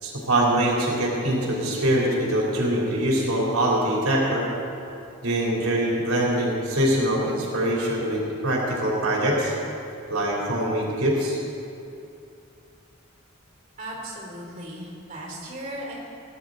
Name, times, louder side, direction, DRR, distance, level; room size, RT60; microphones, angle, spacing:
voice 1, 0.0-4.5 5.2-9.5 10.1-11.4, right 1 dB, 85° right, -4 dB, 3.5 m, -23 dB
voice 2, 13.8-15.9, right 1 dB, 35° right, -4 dB, 4.0 m, -36 dB
18.5 x 11.0 x 4.0 m, 2.7 s
head